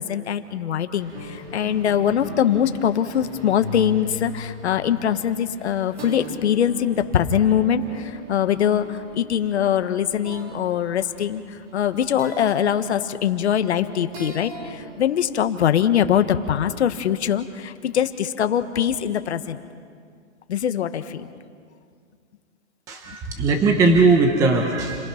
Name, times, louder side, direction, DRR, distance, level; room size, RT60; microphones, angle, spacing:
voice 1, 0.0-19.6 20.5-21.3, left 9 dB, 65° left, 9 dB, 1.5 m, -22 dB
sound 1, 1.0-16.1, equal, 30° right, 3.5 m, -40 dB
voice 2, 22.9-25.0, right 3 dB, 10° right, 3 dB, 0.9 m, -19 dB
30.0 x 22.5 x 5.8 m, 2.2 s
hypercardioid pair, 165°, 36 cm